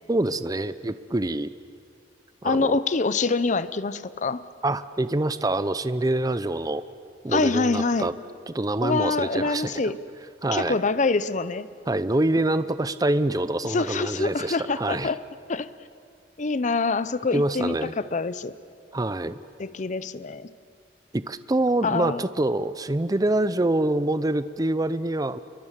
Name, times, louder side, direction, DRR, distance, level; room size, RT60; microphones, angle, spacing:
voice 1, 0.1-1.5 2.4-2.8 4.6-6.8 7.2-8.1 8.5-9.8 10.4-10.8 11.9-15.1 17.3-17.9 18.9-19.4 21.1-25.4, right 2 dB, 20° right, 14 dB, 0.6 m, -25 dB
voice 2, 2.4-4.4 7.3-8.1 8.8-10.0 10.5-11.7 13.6-15.2 15.5-15.7 16.4-18.6 19.6-20.5 21.8-22.2, left 3 dB, 45° left, 14 dB, 0.7 m, -25 dB
28.5 x 23.0 x 7.4 m, 2.4 s
head